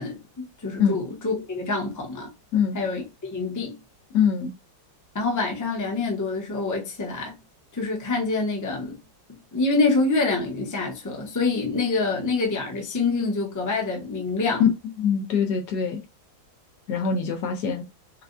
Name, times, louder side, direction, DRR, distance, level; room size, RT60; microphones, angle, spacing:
voice 1, 0.0-2.3 2.7-3.8 5.1-7.4 7.7-9.0 9.5-14.6, left 3 dB, 15° left, 0.7 m, -26 dB
voice 2, 4.1-4.5 14.6-14.7 15.0-16.0 16.9-17.8, left 7 dB, 70° left, 1.2 m, -23 dB
5.7 x 2.3 x 2.6 m
omnidirectional pair, 2.0 m